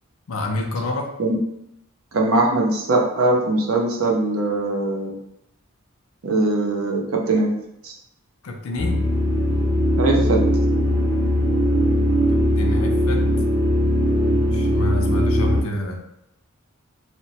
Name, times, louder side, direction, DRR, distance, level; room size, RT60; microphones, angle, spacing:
voice 1, 0.3-1.1 8.4-9.0 12.3-13.2 14.4-16.0, left 1 dB, 70° left, 3 dB, 0.5 m, -28 dB
voice 2, 2.1-5.1 6.2-7.5 7.8-7.9 10.0-10.4, right 2 dB, 70° right, 0 dB, 0.6 m, -21 dB
sound 1, 8.8-15.6, equal, 20° right, 0.6 m, -19 dB
3.0 x 2.1 x 2.8 m, 0.81 s
head